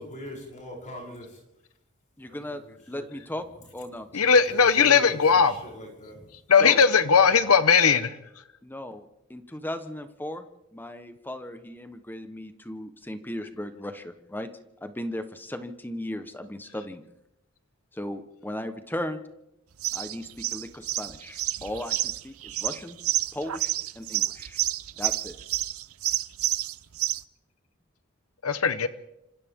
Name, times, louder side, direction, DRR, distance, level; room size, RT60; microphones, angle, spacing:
voice 1, 0.0-1.4 2.2-3.3 3.5-3.6 4.0-6.4 7.3-7.4, left 1 dB, 35° left, -1 dB, 7.6 m, -43 dB
voice 2, 2.2-2.6 2.9-3.4 3.7-4.1 6.6-6.8 8.6-10.5 10.7-14.5 14.8-17.0 17.9-19.2 19.9-23.0 23.3-24.6 25.0-25.3, left 1 dB, 10° left, 8 dB, 1.2 m, -36 dB
voice 3, 4.1-5.5 6.5-8.1 28.4-28.9, left 6 dB, 90° left, 12 dB, 1.0 m, -19 dB
sound 1, 19.8-27.2, right 14 dB, 80° right, 0.7 m, -29 dB
28.5 x 26.0 x 3.7 m, 0.88 s
head